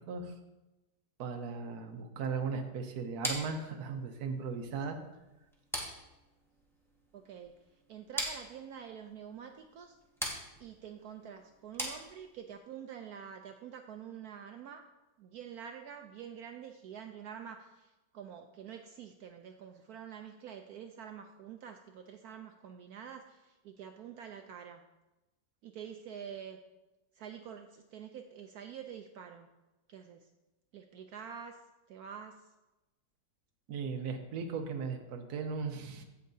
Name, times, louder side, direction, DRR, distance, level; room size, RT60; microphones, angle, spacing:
voice 1, 1.2-5.0 33.7-36.0, right 5 dB, 60° right, 5 dB, 1.3 m, -37 dB
sound 1, 3.2-12.6, equal, ahead, 1.1 m, -42 dB
voice 2, 7.1-7.5 7.9-10.0 10.6-14.9 15.2-24.8 25.6-26.6 27.1-29.5 29.9-30.3 30.7-31.6 31.9-32.5, right 8 dB, 75° right, 6 dB, 0.8 m, -47 dB
15.5 x 5.6 x 2.7 m, 1.0 s
omnidirectional pair, 2.1 m